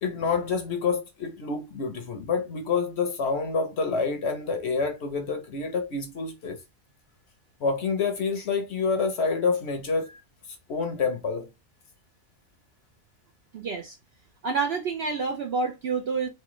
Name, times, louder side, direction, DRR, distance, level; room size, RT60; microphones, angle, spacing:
voice 1, 0.0-6.6 7.6-10.1 10.7-11.5, left 4 dB, 55° left, 0.9 m, -27 dB
voice 2, 13.5-14.0 14.4-16.3, right 4 dB, 60° right, 0.7 m, -28 dB
4.3 x 2.1 x 3.0 m
omnidirectional pair, 1.5 m